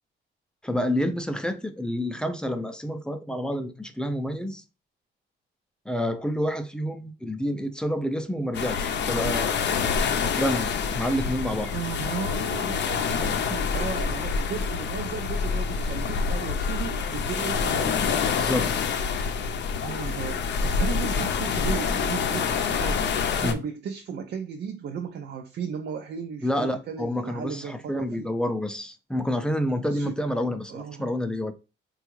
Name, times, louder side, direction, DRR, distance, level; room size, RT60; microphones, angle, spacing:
voice 1, 0.6-4.6 5.9-9.6 10.4-11.7 18.3-18.8 23.4-23.6 26.4-31.5, equal, 5° left, 0.5 m, -28 dB
sound 1, 8.5-23.5, left 6 dB, 60° left, 0.6 m, -27 dB
voice 2, 11.7-18.1 19.8-28.3 29.9-30.1 30.7-31.1, right 7 dB, 60° right, 0.5 m, -35 dB
3.5 x 2.3 x 3.1 m
cardioid pair, 90°, 20 cm